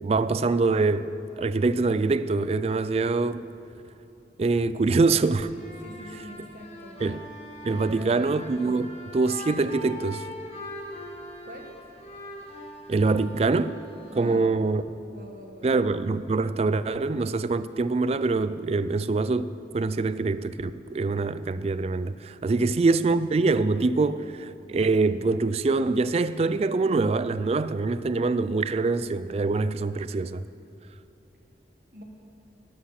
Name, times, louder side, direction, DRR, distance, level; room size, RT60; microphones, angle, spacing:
voice 1, 0.0-1.1 1.4-3.4 4.4-5.5 7.0-7.2 7.6-10.2 12.9-13.7 14.2-14.8 15.6-30.4, right 3 dB, 35° right, 0.3 m, -24 dB
sound 1, 5.4-15.2, left 1 dB, 35° left, 1.7 m, -42 dB
voice 2, 5.8-7.0 7.9-8.3 11.4-11.8 14.1-14.6 15.1-15.7 31.9-32.0, right 1 dB, 50° right, 1.7 m, -44 dB
12.0 x 11.5 x 5.8 m
head